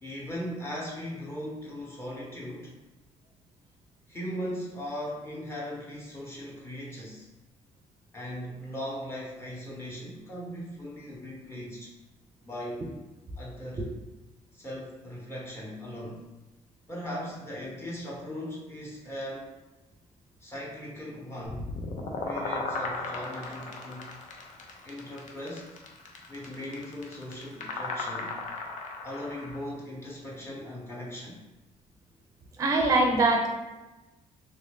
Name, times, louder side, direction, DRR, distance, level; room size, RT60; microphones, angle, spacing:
voice 1, 0.0-2.7 4.1-7.3 8.1-11.9 12.4-12.8 13.4-13.8 14.5-16.3 16.9-19.5 20.4-21.7 22.2-24.1 24.8-25.7 26.3-28.4 29.0-31.4, equal, 20° left, -5 dB, 0.9 m, -38 dB
sound 1, 21.5-29.6, left 3 dB, 70° left, 0.6 m, -36 dB
voice 2, 32.6-33.5, right 2 dB, 25° right, 1 dB, 0.5 m, -22 dB
3.1 x 2.6 x 3.4 m, 1.0 s
cardioid pair, 135°, 13 cm